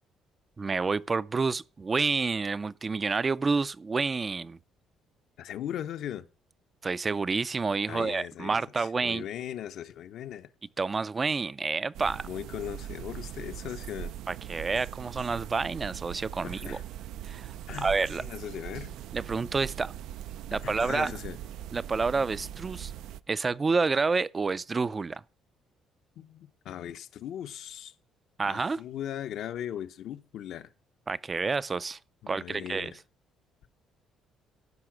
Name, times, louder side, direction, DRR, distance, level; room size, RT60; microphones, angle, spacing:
voice 1, 0.6-4.6 6.8-9.2 10.8-12.3 14.3-16.8 17.2-18.2 19.1-19.9 20.5-21.1 21.7-22.9 23.3-25.2 28.4-28.8 31.1-32.0 32.3-32.9, right 4 dB, 25° right, 0.4 m, -29 dB
voice 2, 5.4-6.3 7.9-10.5 12.2-14.1 16.4-16.8 17.7-19.0 20.5-21.4 26.2-27.9 28.4-30.7 32.2-33.0, left 10 dB, 70° left, 0.9 m, -39 dB
sound 1, 11.9-23.2, right 11 dB, 80° right, 0.5 m, -41 dB
15.0 x 5.8 x 6.1 m
cardioid pair, 120°, 0 cm